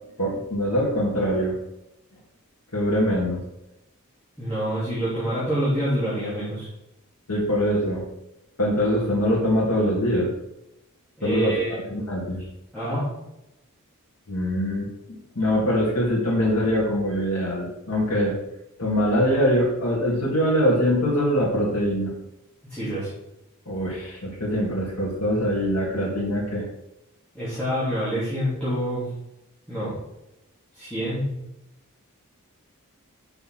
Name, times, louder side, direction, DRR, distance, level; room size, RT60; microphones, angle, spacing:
voice 1, 0.2-1.6 2.7-3.4 7.3-8.0 8.6-10.3 11.2-12.4 14.3-18.4 18.8-22.1 23.7-26.6, equal, 85° left, -6 dB, 2.2 m, -23 dB
voice 2, 4.4-6.7 11.2-11.8 12.7-13.1 22.6-23.1 27.3-29.1 29.7-30.0 30.7-31.3, equal, 5° left, -12 dB, 3.0 m, -26 dB
5.8 x 5.7 x 5.9 m, 0.89 s
head